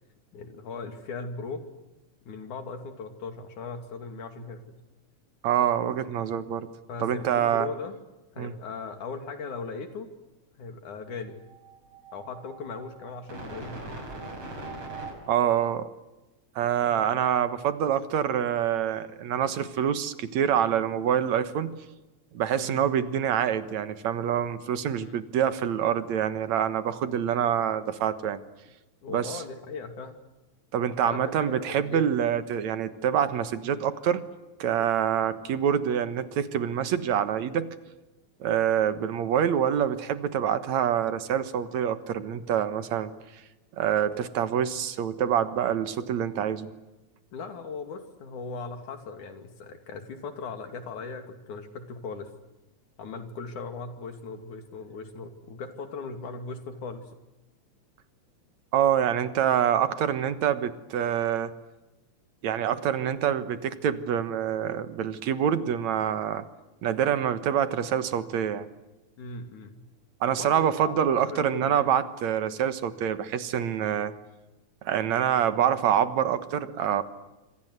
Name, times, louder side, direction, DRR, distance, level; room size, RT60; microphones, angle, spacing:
voice 1, 0.3-1.7 2.3-4.8 6.2-6.5 6.9-8.0 8.4-10.1 10.6-11.4 12.1-14.0 16.8-17.1 22.6-22.9 25.0-25.2 29.0-30.2 31.0-32.0 47.3-52.3 53.0-57.1 69.2-69.8 70.3-70.9 71.2-71.9, left 4 dB, 85° left, 8 dB, 4.2 m, -38 dB
voice 2, 5.4-6.7 7.0-7.7 8.4-8.5 15.3-15.9 16.6-21.7 22.3-28.4 29.1-29.4 30.7-34.2 34.6-37.8 38.4-43.1 43.8-46.7 58.7-61.5 62.4-66.4 66.8-68.7 70.2-74.1 74.8-77.0, right 9 dB, 70° right, 12 dB, 2.6 m, -26 dB
sound 1, 11.3-15.1, right 2 dB, 55° right, 7.2 m, -41 dB
26.5 x 26.0 x 8.1 m, 1.0 s
omnidirectional pair, 3.4 m